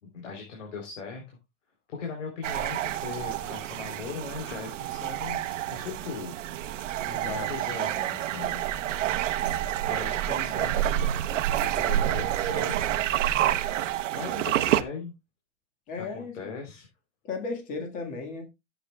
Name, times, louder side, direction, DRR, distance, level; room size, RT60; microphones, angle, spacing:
voice 1, 0.0-1.4 1.9-6.4 7.2-8.6 9.9-11.1 11.6-12.9 14.1-15.1 16.0-16.9, left 5 dB, 80° left, 3.7 m, -39 dB
sound 1, 2.4-14.8, right 12 dB, 85° right, 1.0 m, -28 dB
voice 2, 7.1-7.5 15.9-16.3 17.2-18.4, left 4 dB, 20° left, 1.7 m, -35 dB
14.0 x 8.2 x 2.3 m
supercardioid pair, 180°, 36 cm